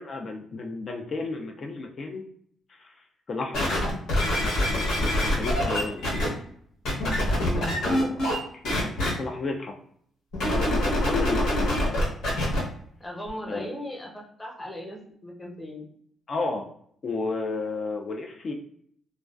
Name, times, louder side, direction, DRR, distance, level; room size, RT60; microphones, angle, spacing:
voice 1, 0.0-2.2 2.7-3.0 3.3-3.7 4.4-6.1 7.6-9.7 10.5-11.8 13.5-13.8 16.3-16.7 17.0-18.5, left 3 dB, 45° left, 3 dB, 0.3 m, -33 dB
sound 1, 3.5-6.3 6.8-8.4 8.6-9.1 10.3-12.6 13.3-13.4, left 1 dB, 80° left, 0.9 m, -25 dB
voice 2, 7.3-7.8 13.0-15.9, left 1 dB, 20° left, -1 dB, 0.7 m, -38 dB
2.3 x 2.2 x 2.3 m, 0.65 s
cardioid pair, 90°, 0 cm